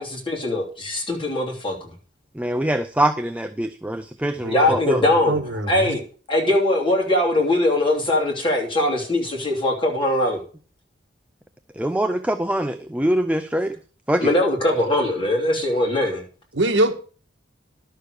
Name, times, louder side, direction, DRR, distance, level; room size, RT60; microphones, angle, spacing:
voice 1, 0.0-1.9 4.5-5.4 5.7-6.0 6.3-10.4 14.2-16.2, left 1 dB, 25° left, 3.2 m, -21 dB
voice 2, 2.4-5.0 11.8-13.7 14.1-14.3, right 1 dB, 5° right, 0.5 m, -23 dB
voice 3, 4.4-6.0 16.5-16.9, right 1 dB, 70° right, 1.6 m, -24 dB
11.5 x 6.6 x 6.5 m
head